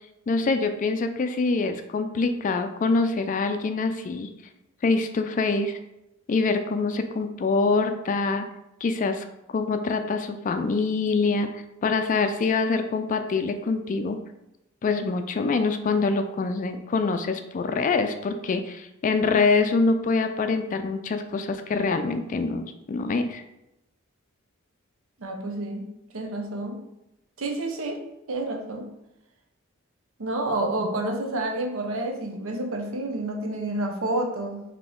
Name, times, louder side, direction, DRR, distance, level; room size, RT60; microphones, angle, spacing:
voice 1, 0.3-4.3 4.8-5.8 6.3-8.5 8.8-9.2 9.5-11.5 11.8-14.2 14.8-23.4, left 4 dB, 40° left, 8 dB, 0.3 m, -25 dB
voice 2, 25.2-25.9 26.1-26.8 27.4-28.0 28.3-28.9 30.2-34.6, right 2 dB, 75° right, 3 dB, 0.7 m, -29 dB
4.0 x 2.8 x 3.7 m, 0.89 s
head